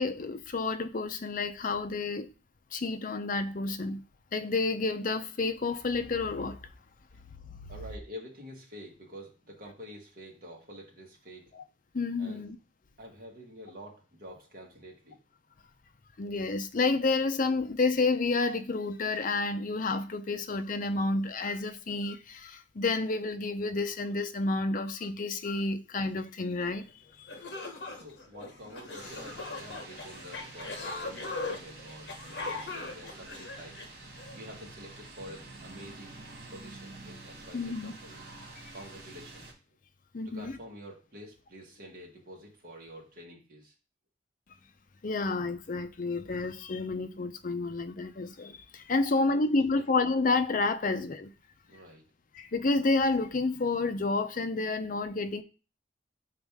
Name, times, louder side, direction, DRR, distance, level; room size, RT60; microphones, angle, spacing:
voice 1, 0.0-2.3 2.7-4.0 4.3-6.6 11.6-11.7 11.9-12.6 16.2-26.8 27.2-27.4 37.5-37.9 40.1-40.5 45.0-51.3 52.3-55.4, left 3 dB, 50° left, 0.6 m, -30 dB
voice 2, 7.7-11.5 12.2-12.4 13.0-15.2 27.9-33.8 34.3-36.1 36.5-38.2 38.7-39.8 40.2-43.7 49.7-49.8 51.7-52.0, equal, 55° right, 1.7 m, -48 dB
sound 1, 26.9-27.0 27.3-34.4, left 3 dB, 65° left, 1.1 m, -40 dB
sound 2, 29.0-39.5, right 2 dB, 75° right, 1.9 m, -48 dB
6.7 x 4.1 x 3.5 m
head